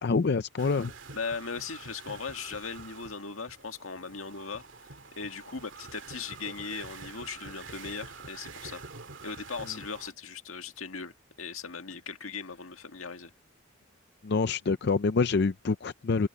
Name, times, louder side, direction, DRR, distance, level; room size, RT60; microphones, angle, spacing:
voice 1, 0.0-0.9 14.2-16.3, left 4 dB, 55° left, 0.5 m, -26 dB
sound 1, 0.6-10.1, right 4 dB, 65° right, 2.3 m, -46 dB
voice 2, 1.1-8.8 9.2-13.3, left 5 dB, 90° left, 1.9 m, -39 dB
open air
head